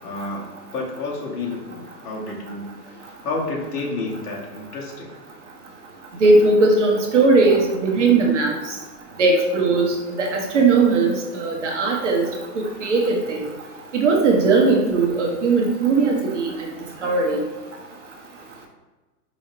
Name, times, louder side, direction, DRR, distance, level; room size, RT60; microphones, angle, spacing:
voice 1, 0.0-5.2, left 3 dB, 65° left, -2 dB, 1.3 m, -30 dB
voice 2, 6.2-8.5 9.2-12.2 12.6-13.5 13.9-16.5 17.0-17.4, right 3 dB, 45° right, 1 dB, 0.7 m, -18 dB
4.8 x 3.0 x 2.7 m, 1.2 s
hypercardioid pair, 175°, 50 cm